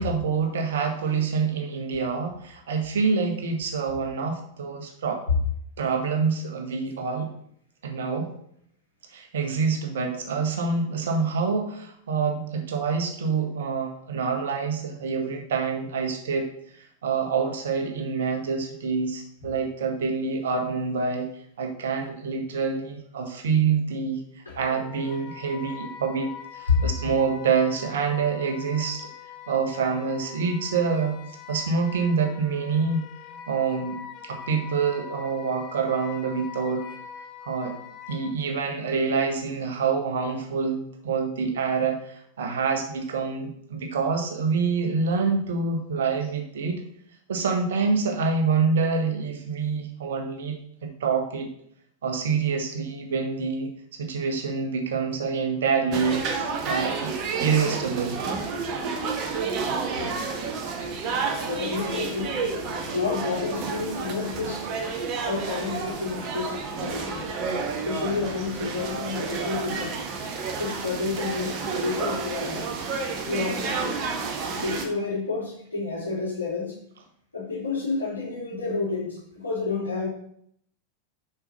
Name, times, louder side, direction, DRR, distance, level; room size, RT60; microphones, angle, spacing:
voice 1, 0.0-5.2 5.8-7.3 7.8-8.3 9.1-16.5 17.0-21.3 21.6-24.2 24.5-29.1 29.5-31.1 31.5-33.0 33.5-36.8 37.5-37.7 38.1-46.8 47.3-50.6 50.8-51.5 52.0-53.7 54.0-57.1 57.4-58.2, right 5 dB, 60° right, 3 dB, 1.6 m, -26 dB
Wind instrument woodwind instrument, 24.6-38.4, left 9 dB, 35° left, 1.2 m, -43 dB
sound 1, 55.9-74.9, right 4 dB, 40° right, 1.4 m, -30 dB
voice 2, 61.5-62.4 62.7-64.7 65.2-67.3 67.8-70.0 70.6-72.7 73.3-74.0 74.6-76.8 77.3-79.2 79.4-80.1, left 4 dB, 80° left, -5 dB, 3.6 m, -30 dB
6.6 x 5.8 x 5.5 m, 0.69 s
figure-of-eight pair, 90°, 0 cm